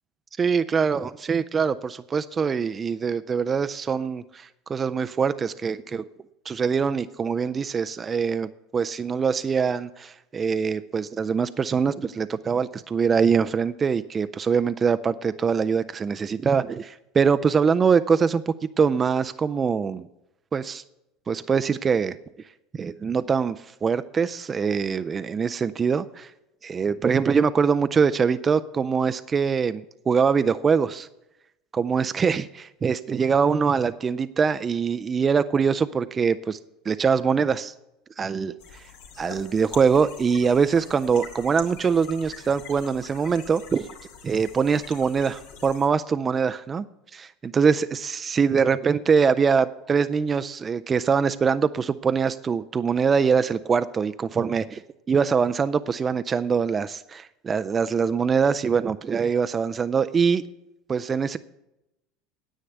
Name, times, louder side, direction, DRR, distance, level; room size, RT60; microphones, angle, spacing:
voice 1, 0.4-6.0 6.5-20.1 20.5-20.8 21.3-22.2 22.7-23.6 23.8-26.3 26.6-31.1 31.7-36.6 36.9-37.7 38.2-38.8 39.2-43.9 44.2-46.9 47.1-54.8 55.1-60.4 60.9-61.4, right 6 dB, 25° right, 12 dB, 0.4 m, -23 dB
sound 1, 38.6-45.9, left 6 dB, 80° left, 2.4 m, -44 dB
9.9 x 8.2 x 8.0 m, 0.91 s
supercardioid pair, 125°, 0 cm